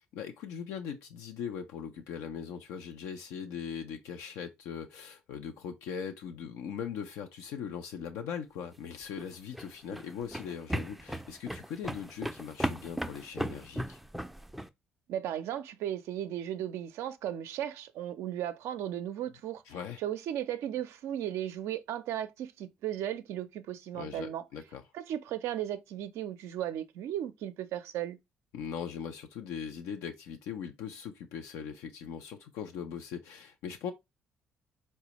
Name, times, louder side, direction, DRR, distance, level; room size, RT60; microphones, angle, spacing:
voice 1, 0.1-14.0 19.7-20.0 23.9-24.8 28.5-33.9, left 7 dB, 75° left, 0.4 m, -40 dB
sound 1, 9.0-14.7, equal, 5° right, 0.4 m, -36 dB
voice 2, 15.1-19.6 20.0-24.4 24.9-28.2, right 11 dB, 70° right, 0.4 m, -36 dB
4.0 x 2.2 x 2.9 m
hypercardioid pair, 55°, 5 cm